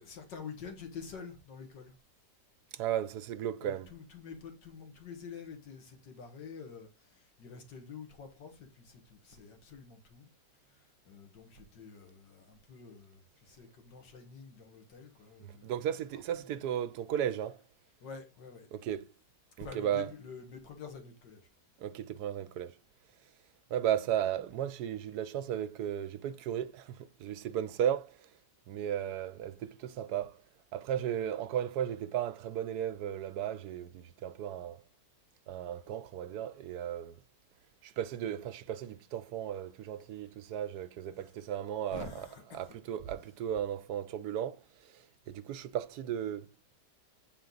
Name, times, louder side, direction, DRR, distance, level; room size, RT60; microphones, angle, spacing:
voice 1, 0.0-2.0 3.6-10.3 10.7-15.7 16.1-16.5 18.0-18.7 19.6-21.5 41.9-42.8 43.1-43.3, left 5 dB, 80° left, 2.1 m, -48 dB
voice 2, 2.7-3.9 15.4-17.6 18.7-19.0 19.6-20.1 21.8-22.8 23.7-28.2 28.7-30.4 30.7-34.8 35.5-37.2 37.8-42.3 42.5-46.5, right 10 dB, 70° right, 1.1 m, -35 dB
8.8 x 4.4 x 3.9 m
omnidirectional pair, 1.9 m